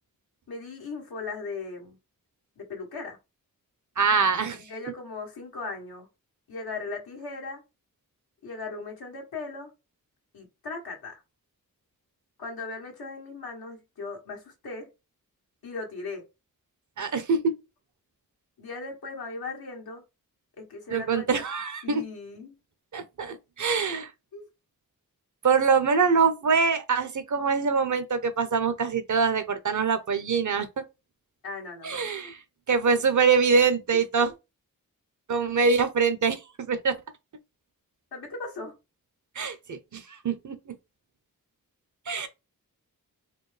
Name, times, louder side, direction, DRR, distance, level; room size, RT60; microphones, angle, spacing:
voice 1, 0.5-2.0 2.6-3.2 4.5-6.1 6.5-7.6 8.4-9.7 10.3-11.2 12.4-14.9 15.6-16.2 18.6-20.0 20.6-21.4 21.8-22.5 24.3-24.4 31.4-32.1 33.9-34.0 38.1-38.7, left 3 dB, 90° left, 1.4 m, -38 dB
voice 2, 4.0-4.6 17.0-17.5 20.9-22.0 22.9-24.1 25.4-30.8 31.8-32.4 32.7-34.3 35.3-36.9 39.3-40.8 42.1-42.3, right 5 dB, 55° right, 0.8 m, -24 dB
4.4 x 2.3 x 3.3 m
cardioid pair, 45°, 36 cm